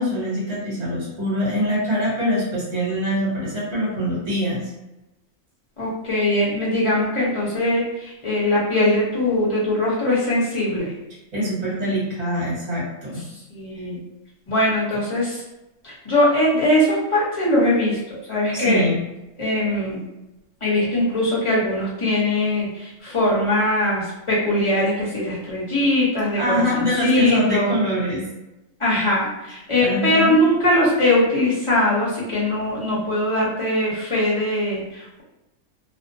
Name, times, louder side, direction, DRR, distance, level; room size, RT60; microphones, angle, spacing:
voice 1, 0.0-4.7 11.3-13.2 14.9-15.0 18.5-19.0 26.4-28.2 29.8-30.4, equal, 50° right, -7 dB, 1.3 m, -24 dB
voice 2, 5.8-10.9 13.5-14.0 14.5-15.4 15.8-18.9 19.4-20.0 20.6-27.7 28.8-35.2, left 1 dB, 25° left, -7 dB, 0.9 m, -21 dB
2.6 x 2.1 x 2.7 m, 0.96 s
omnidirectional pair, 1.5 m